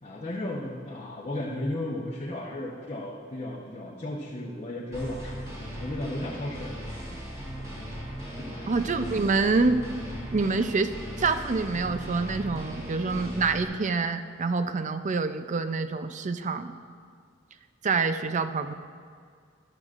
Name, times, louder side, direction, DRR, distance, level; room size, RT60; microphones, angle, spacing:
voice 1, 0.0-5.4 5.8-6.8 8.4-8.8, left 1 dB, 30° left, -4 dB, 0.9 m, -34 dB
sound 1, 4.9-13.6, equal, 15° right, 2.7 m, -38 dB
voice 2, 8.7-9.8 10.3-10.9 11.2-16.7 17.8-18.7, right 4 dB, 40° right, 10 dB, 0.5 m, -26 dB
14.0 x 11.5 x 2.5 m, 2.1 s
head